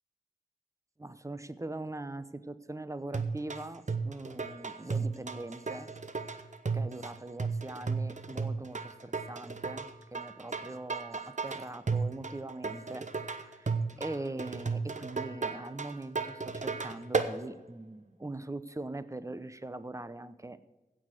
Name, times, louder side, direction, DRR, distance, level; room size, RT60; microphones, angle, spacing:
voice 1, 1.0-5.9 6.7-13.1 13.5-20.6, right 2 dB, 20° right, 14 dB, 0.8 m, -42 dB
sound 1, 3.1-17.3, right 4 dB, 50° right, 1.0 m, -34 dB
16.5 x 6.3 x 6.5 m, 1.1 s
wide cardioid pair, 60°, 15 cm